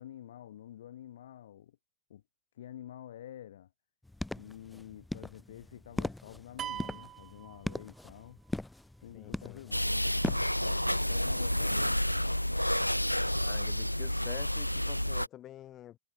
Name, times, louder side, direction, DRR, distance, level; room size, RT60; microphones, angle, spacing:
voice 1, 0.0-1.8 2.1-2.2 2.5-3.7 4.3-8.4 9.0-10.1 10.6-12.4, left 11 dB, 60° left, 3.0 m, -49 dB
sound 1, 4.0-10.5, left 2 dB, 5° left, 0.6 m, -40 dB
sound 2, 6.6-8.3, right 11 dB, 30° right, 1.1 m, -42 dB
voice 2, 9.1-9.6 13.3-16.0, left 12 dB, 30° left, 5.8 m, -48 dB
sound 3, 9.7-15.3, equal, 90° left, 0.6 m, -30 dB
figure-of-eight pair, 90°, 0 cm